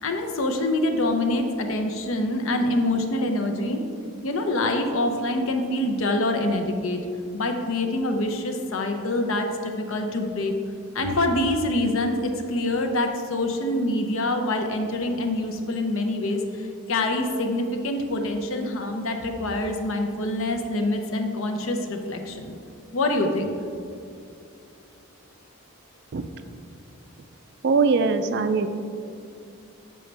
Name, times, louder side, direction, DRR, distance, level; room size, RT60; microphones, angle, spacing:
voice 1, 0.0-3.8 4.2-7.0 7.3-10.5 10.9-22.5 22.9-23.5, left 1 dB, 65° left, 5 dB, 0.7 m, -25 dB
voice 2, 27.6-28.7, right 4 dB, 50° right, 9 dB, 0.3 m, -21 dB
6.9 x 6.4 x 3.3 m, 2.5 s
head